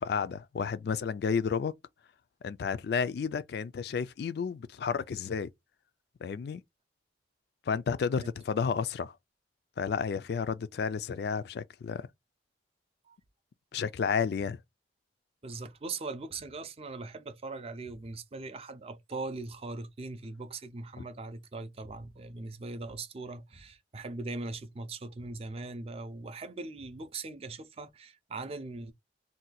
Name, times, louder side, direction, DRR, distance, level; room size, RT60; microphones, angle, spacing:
voice 1, 0.0-1.7 2.4-5.5 6.2-6.6 7.7-9.1 9.8-12.1 13.7-14.6 21.0-21.1, left 6 dB, 55° left, 0.3 m, -31 dB
voice 2, 15.4-28.9, right 3 dB, 30° right, 0.4 m, -40 dB
2.6 x 2.2 x 4.0 m
head